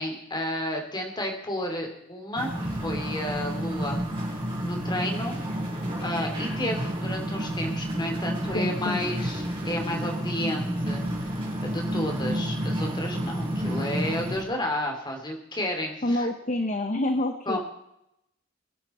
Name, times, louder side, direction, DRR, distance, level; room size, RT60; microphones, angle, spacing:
voice 1, 0.0-4.0 4.6-5.4 6.0-11.3 11.6-16.3 17.5-17.6, left 1 dB, 20° left, 2 dB, 2.8 m, -32 dB
sound 1, 2.3-14.4, equal, 25° right, 6.4 m, -30 dB
voice 2, 8.5-9.0 16.0-17.6, left 1 dB, 35° left, 7 dB, 0.9 m, -27 dB
22.5 x 10.0 x 4.3 m, 0.81 s
head